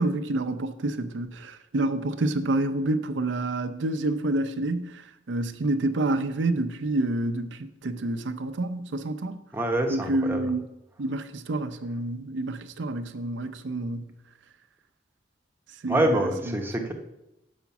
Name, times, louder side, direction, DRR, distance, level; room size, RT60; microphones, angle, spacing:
voice 1, 0.0-5.0 5.3-9.4 9.9-10.6 11.0-14.1 15.8-16.3 16.8-16.9, right 2 dB, 90° right, 0.6 m, -28 dB
voice 2, 9.5-10.4 15.9-16.9, right 1 dB, 10° right, 0.9 m, -25 dB
7.1 x 5.1 x 5.8 m
head